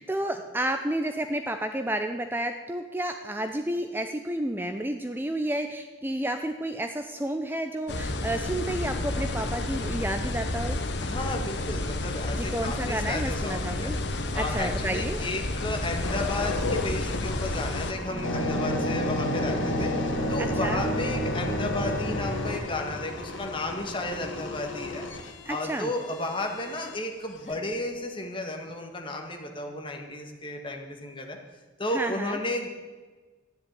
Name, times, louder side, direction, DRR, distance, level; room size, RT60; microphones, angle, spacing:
voice 1, 0.0-10.8 12.3-14.0 14.3-15.2 20.4-20.8 25.5-25.9 31.9-32.4, right 1 dB, 10° right, 6 dB, 0.6 m, -31 dB
sound 1, 7.9-17.9, left 2 dB, 60° left, 1.2 m, -31 dB
voice 2, 11.0-25.1 25.5-31.4 31.8-32.7, left 2 dB, 25° left, 3 dB, 2.0 m, -33 dB
sound 2, 16.0-27.0 27.5-27.7, left 1 dB, 85° left, 1.9 m, -32 dB
Bowed string instrument, 18.1-22.1, right 2 dB, 55° right, 1.9 m, -34 dB
13.0 x 10.5 x 9.2 m, 1.3 s
head